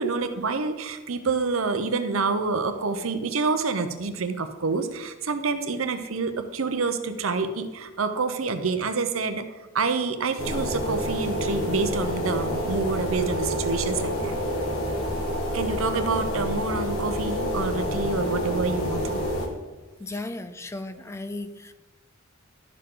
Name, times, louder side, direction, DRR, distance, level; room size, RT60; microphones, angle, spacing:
voice 1, 0.0-9.4 9.7-14.4 15.5-19.2, right 4 dB, 80° right, 0.8 m, -27 dB
sound 1, 10.4-19.5, equal, 80° left, 1.7 m, -28 dB
voice 2, 20.0-21.7, left 2 dB, 15° left, 0.4 m, -35 dB
12.0 x 6.7 x 3.9 m
head